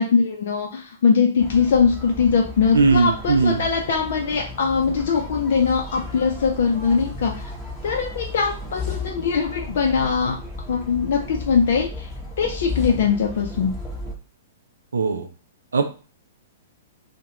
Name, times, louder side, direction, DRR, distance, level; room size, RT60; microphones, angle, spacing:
voice 1, 0.0-7.5 7.8-10.4 10.7-12.1 12.4-13.7, left 5 dB, 60° left, 0 dB, 0.4 m, -21 dB
sound 1, 1.4-14.1, left 3 dB, 5° left, 0.8 m, -34 dB
voice 2, 2.7-3.7 14.9-15.3 15.7-15.9, right 4 dB, 80° right, 6 dB, 0.4 m, -19 dB
2.3 x 2.2 x 2.9 m, 0.36 s
hypercardioid pair, 115°, 0 cm